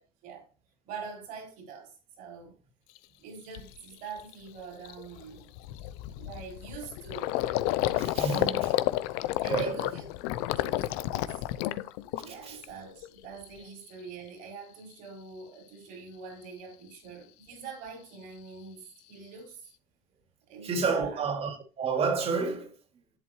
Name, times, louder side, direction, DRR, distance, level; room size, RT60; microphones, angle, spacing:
voice 1, 0.8-2.5 3.2-5.5 6.1-7.4 9.4-10.1 10.3-11.4 12.2-19.7 20.5-21.3, right 5 dB, 65° right, 5.1 m, -44 dB
Gurgling, 3.0-3.1 3.5-3.8 4.2-4.3 4.6-12.6 13.0-13.6, left 15 dB, 70° left, 0.6 m, -31 dB
voice 2, 8.0-8.7 9.5-9.8 12.5-12.6 20.6-22.7, right 5 dB, 45° right, 3.1 m, -30 dB
11.5 x 7.9 x 3.1 m
supercardioid pair, 85°, 15 cm